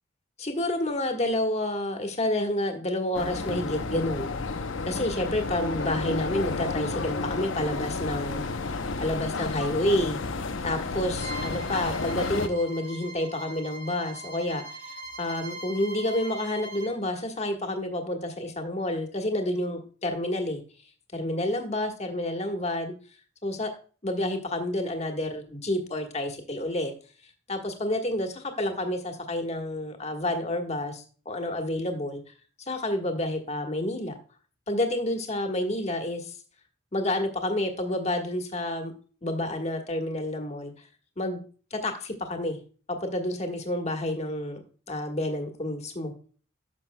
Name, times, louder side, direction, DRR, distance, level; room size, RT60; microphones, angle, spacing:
voice 1, 0.4-4.3 4.8-8.5 9.0-10.2 10.6-20.6 21.1-22.9 23.4-23.7 24.0-26.9 27.5-32.2 32.7-34.1 34.7-36.4 36.9-38.9 39.2-40.9 41.2-41.4 41.7-42.6 42.9-46.1, left 1 dB, 30° left, 5 dB, 1.4 m, -29 dB
sound 1, 3.1-12.5, left 3 dB, 70° left, 0.7 m, -31 dB
Bowed string instrument, 11.2-16.9, right 2 dB, 40° right, 2.3 m, -41 dB
12.0 x 6.1 x 2.2 m, 0.39 s
head